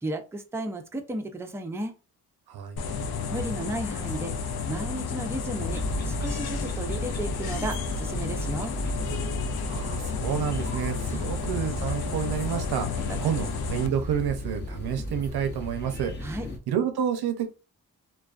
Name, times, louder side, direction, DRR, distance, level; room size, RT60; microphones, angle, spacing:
voice 1, 0.0-1.9 3.3-4.4 4.7-8.7 11.1-11.3 13.3-13.4 16.2-16.5, right 1 dB, 5° right, 0.4 m, -34 dB
voice 2, 2.5-2.8 9.7-16.1 16.7-17.5, right 8 dB, 90° right, 0.6 m, -29 dB
sound 1, 2.8-13.9, left 5 dB, 75° left, 0.5 m, -32 dB
sound 2, 5.7-16.6, equal, 30° left, 0.7 m, -35 dB
2.3 x 2.3 x 2.4 m
cardioid pair, 75°, 37 cm